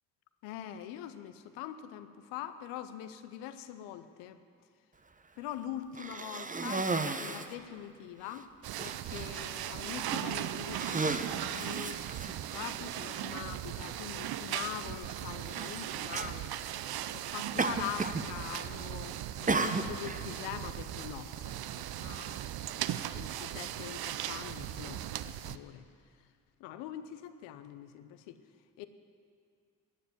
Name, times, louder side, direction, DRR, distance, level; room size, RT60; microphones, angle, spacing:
voice 1, 0.4-4.4 5.4-8.5 8.8-12.1 12.5-16.5 17.1-22.6 23.1-25.9 26.6-28.4 28.8-28.9, left 11 dB, 85° left, 11 dB, 0.7 m, -43 dB
Cough, 5.9-7.6 8.3-8.4 8.8-9.3 10.0-10.3 10.7-12.6 13.5-13.6 15.5-15.7 16.1-16.4 17.6-18.3 18.5-18.9 19.5-20.2, right 3 dB, 20° right, 0.8 m, -34 dB
sound 1, 8.6-25.6, right 12 dB, 60° right, 0.6 m, -38 dB
12.0 x 7.3 x 9.4 m, 2.2 s
hypercardioid pair, 45°, 42 cm